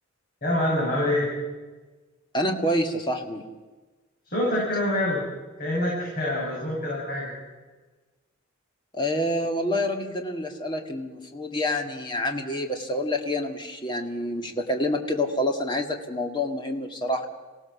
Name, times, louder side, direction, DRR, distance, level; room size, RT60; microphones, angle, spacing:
voice 1, 0.4-1.3 4.2-5.2 5.6-7.3, left 1 dB, 45° left, -5 dB, 7.2 m, -25 dB
voice 2, 2.3-3.4 8.9-17.3, left 1 dB, 20° left, 4 dB, 1.9 m, -27 dB
27.0 x 17.0 x 7.1 m, 1.3 s
head